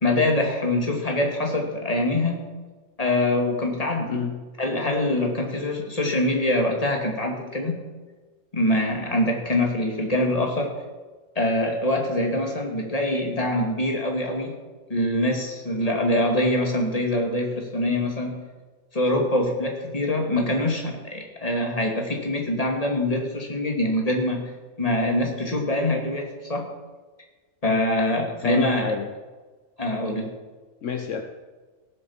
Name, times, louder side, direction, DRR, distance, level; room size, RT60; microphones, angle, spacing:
voice 1, 0.0-2.4 3.0-4.2 4.6-7.8 8.5-10.7 11.4-14.5 14.9-18.3 18.9-24.4 24.8-26.6 27.6-28.9 29.8-30.3, left 1 dB, 25° left, 1 dB, 2.5 m, -24 dB
voice 2, 4.1-4.4 28.4-29.1 30.8-31.2, left 6 dB, 70° left, 4 dB, 1.3 m, -28 dB
17.0 x 7.8 x 7.3 m, 1.3 s
omnidirectional pair, 1.4 m